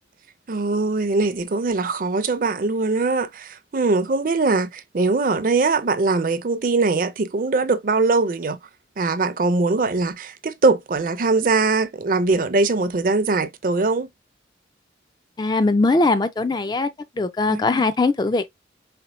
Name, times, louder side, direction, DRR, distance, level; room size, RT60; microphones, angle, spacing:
voice 1, 0.5-8.6 9.0-14.1 17.5-17.8, right 3 dB, 45° right, 0.5 m, -21 dB
voice 2, 15.4-18.6, left 3 dB, 20° left, 0.3 m, -21 dB
4.3 x 2.2 x 4.1 m
head